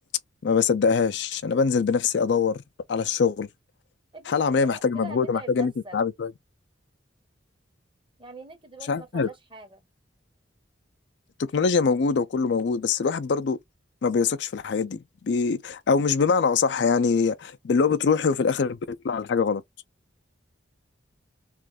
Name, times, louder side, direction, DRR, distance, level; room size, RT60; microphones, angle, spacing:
voice 1, 0.4-2.6 2.9-3.5 4.3-6.3 8.9-9.3 11.4-13.6 14.0-19.6, left 5 dB, 65° left, 0.4 m, -23 dB
voice 2, 4.1-6.0 8.2-9.8 17.7-18.0, right 2 dB, 25° right, 0.9 m, -43 dB
3.1 x 2.4 x 3.4 m
head